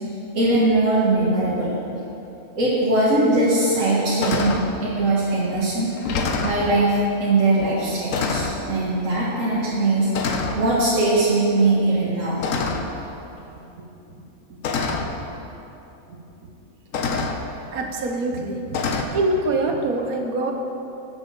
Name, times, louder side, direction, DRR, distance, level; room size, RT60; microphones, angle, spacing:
voice 1, 0.3-1.8 2.6-4.6 4.8-5.9 6.2-12.4, right 2 dB, 65° right, -8 dB, 2.0 m, -21 dB
sound 1, 3.1-3.2 3.7-3.9 4.2-4.7 5.5-5.6 6.0-6.6 7.6-7.8 8.1-8.6 9.5-9.8 10.1-10.6 12.4-13.0 14.1-14.2 14.6-15.1 16.3-16.4 16.9-17.4 18.7-19.0, left 4 dB, 70° left, 1.1 m, -26 dB
voice 2, 13.5-13.9 14.9-15.1 17.7-18.8 19.1-20.5, right 2 dB, 80° right, 3 dB, 1.5 m, -25 dB
10.0 x 6.8 x 7.1 m, 3.0 s
omnidirectional pair, 1.5 m